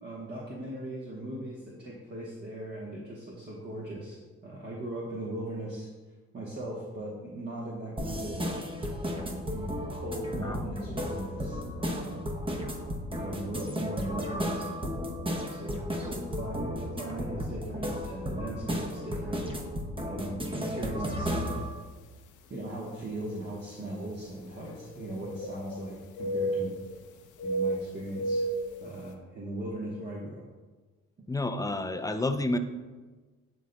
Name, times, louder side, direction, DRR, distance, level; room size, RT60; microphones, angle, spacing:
voice 1, 0.0-5.9 6.3-8.5 9.1-12.2 13.1-14.7 15.3-19.4 20.1-21.5 22.5-26.7 27.4-28.4 28.8-30.4, right 1 dB, 35° right, -4 dB, 1.1 m, -39 dB
sound 1, 8.0-21.7, equal, 15° right, 0.8 m, -34 dB
sound 2, 21.7-21.9 22.6-22.7 24.6-25.9 26.1-27.0 27.4-28.8, right 1 dB, 80° left, 0.7 m, -32 dB
voice 2, 31.3-32.6, left 2 dB, 10° left, 8 dB, 0.4 m, -29 dB
10.5 x 3.9 x 2.2 m, 1.3 s
cardioid pair, 90°, 30 cm